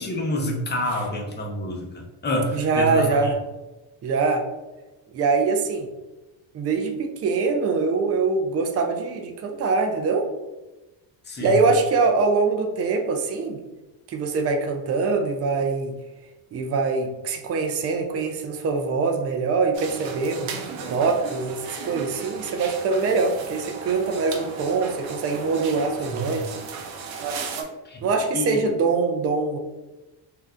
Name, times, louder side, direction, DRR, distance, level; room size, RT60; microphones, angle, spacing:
voice 1, 0.0-3.3 11.2-11.6 26.1-26.4 27.8-28.0 28.3-28.6, equal, 25° left, 0 dB, 0.6 m, -28 dB
voice 2, 2.5-3.3 4.0-4.5 5.1-5.9 6.5-10.3 11.4-13.6 14.1-15.9 16.5-20.5 20.9-26.5 28.0-29.6, right 4 dB, 35° right, 4 dB, 0.4 m, -23 dB
sound 1, 19.7-27.6, right 5 dB, 85° right, 0.6 m, -35 dB
2.6 x 2.2 x 3.4 m, 1.1 s
cardioid pair, 115°, 45 cm